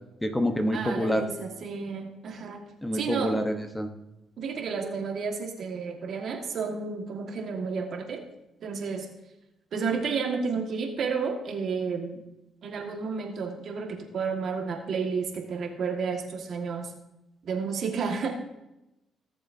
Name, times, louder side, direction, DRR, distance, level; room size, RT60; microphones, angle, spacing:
voice 1, 0.2-1.3 2.8-3.9, equal, 10° left, 6 dB, 1.1 m, -27 dB
voice 2, 0.7-2.6 2.9-3.4 4.4-8.2 8.6-9.1 9.7-12.2 12.6-16.9 17.4-18.3, right 5 dB, 60° right, 2 dB, 1.8 m, -31 dB
17.5 x 7.4 x 2.7 m, 0.95 s
cardioid pair, 90°, 0 cm